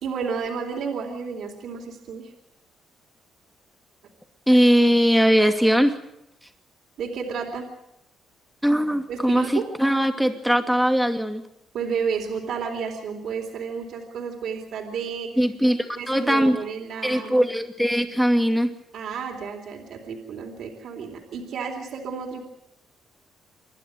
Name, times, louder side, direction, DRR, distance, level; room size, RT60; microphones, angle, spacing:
voice 1, 0.0-2.3 7.0-7.7 9.1-9.7 11.7-15.3 16.0-17.5 18.9-22.4, right 6 dB, 70° right, 3 dB, 3.8 m, -31 dB
voice 2, 4.5-5.9 8.6-11.4 15.4-16.6 17.0-18.7, equal, ahead, 6 dB, 2.5 m, -20 dB
27.0 x 11.5 x 9.6 m, 0.84 s
cardioid pair, 90°, 0 cm